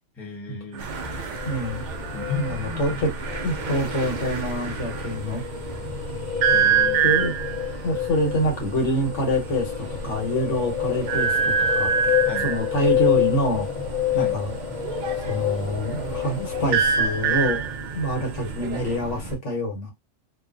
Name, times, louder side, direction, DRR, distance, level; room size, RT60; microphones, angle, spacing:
voice 1, 0.2-0.9 2.1-3.0 6.5-7.1 12.2-12.5 14.1-14.4, left 5 dB, ahead, 1.0 m, -34 dB
sound 1, 0.7-5.1 6.4-7.6 8.8-8.9 9.2-9.4 9.8-9.9 11.0-12.7 14.8-19.0, right 7 dB, 75° right, 0.9 m, -25 dB
sound 2, 0.8-17.8, left 12 dB, 55° left, 0.5 m, -29 dB
sound 3, 0.8-19.4, right 3 dB, 55° right, 0.6 m, -36 dB
voice 2, 1.4-1.8 2.4-3.1 3.4-5.4 7.0-7.3 7.8-11.9 12.4-13.7 14.1-14.5 15.2-17.6 17.9-19.9, equal, 75° left, 1.4 m, -26 dB
2.6 x 2.4 x 2.4 m
omnidirectional pair, 1.2 m